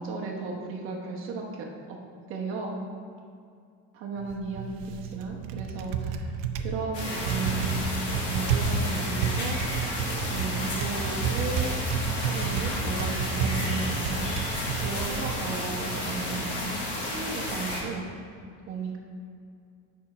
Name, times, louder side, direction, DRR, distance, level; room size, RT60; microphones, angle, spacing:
voice 1, 0.0-2.0 2.3-2.8 3.9-9.6 10.2-11.7 12.2-14.4 14.8-16.7 17.0-18.0 18.7-19.0, right 4 dB, 40° right, 0 dB, 1.0 m, -35 dB
Typing, 4.2-16.6, right 6 dB, 75° right, 0.7 m, -31 dB
sound 1, 6.9-17.8, left 1 dB, 60° left, 1.9 m, -32 dB
8.5 x 5.6 x 4.2 m, 2.3 s
cardioid pair, 180°, 34 cm